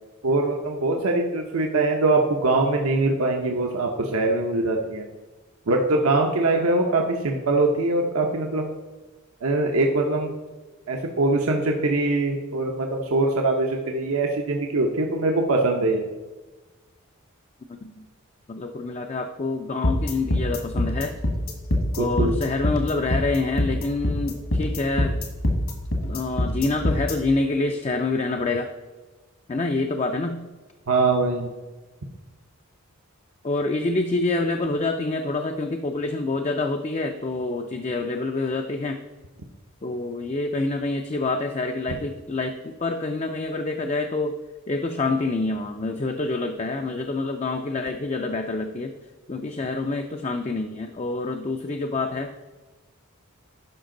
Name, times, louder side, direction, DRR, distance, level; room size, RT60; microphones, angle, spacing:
voice 1, 0.2-5.0 5.7-8.7 9.4-10.3 10.9-16.1 22.0-22.3 30.9-31.5, right 2 dB, 80° right, 2 dB, 0.8 m, -22 dB
voice 2, 17.7-18.1 18.5-21.2 22.0-25.2 26.1-28.7 29.5-30.4 33.4-39.0 39.8-44.4 44.7-48.9 49.3-52.3, left 3 dB, 30° left, 5 dB, 0.4 m, -27 dB
sound 1, 19.8-27.1, left 1 dB, 70° left, 1.6 m, -24 dB
12.5 x 5.1 x 3.8 m, 1.2 s
head